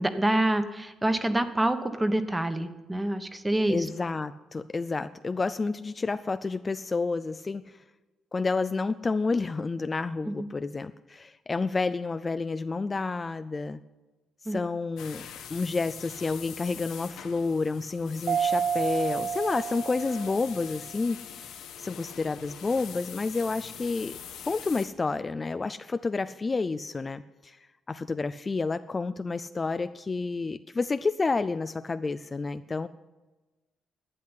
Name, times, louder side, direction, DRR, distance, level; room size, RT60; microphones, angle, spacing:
voice 1, 0.0-3.9 10.3-10.5 14.5-14.6, right 1 dB, 15° right, 9 dB, 1.2 m, -27 dB
voice 2, 3.7-7.8 8.3-13.8 14.5-15.2 15.5-21.5 21.8-24.1 24.5-27.6 27.9-32.9, left 3 dB, 30° left, 12 dB, 0.4 m, -30 dB
sound 1, 15.0-24.9, left 8 dB, 85° left, 1.5 m, -43 dB
Mallet percussion, 18.3-20.8, right 7 dB, 60° right, 0.3 m, -30 dB
12.0 x 8.5 x 9.9 m, 1.2 s
cardioid pair, 90°, 0 cm